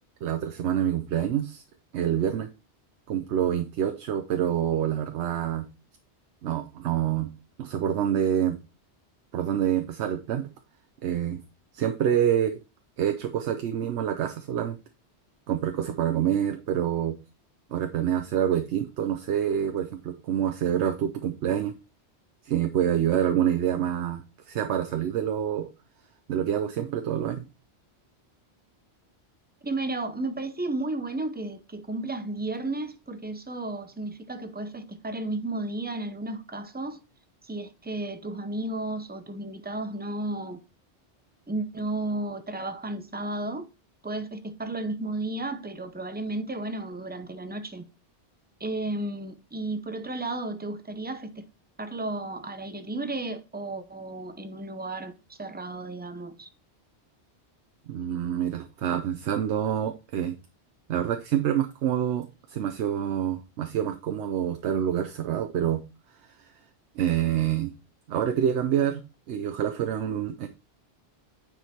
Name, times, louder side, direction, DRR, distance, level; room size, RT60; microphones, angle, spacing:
voice 1, 0.2-1.6 1.9-2.5 3.1-5.7 6.4-7.3 7.6-8.6 9.3-10.5 11.0-11.4 11.7-12.6 13.0-14.8 15.5-17.1 17.7-21.7 22.4-25.7 26.3-27.5 57.9-60.4 60.9-65.8 66.3-66.5 66.9-67.7 68.1-69.0 69.3-70.5, right 10 dB, 80° right, 0.9 m, -27 dB
voice 2, 29.6-37.0 37.4-40.6 41.5-43.7 44.0-47.8 48.6-51.4 51.8-56.5, right 2 dB, 15° right, 0.4 m, -33 dB
9.1 x 5.1 x 2.8 m
omnidirectional pair, 1.1 m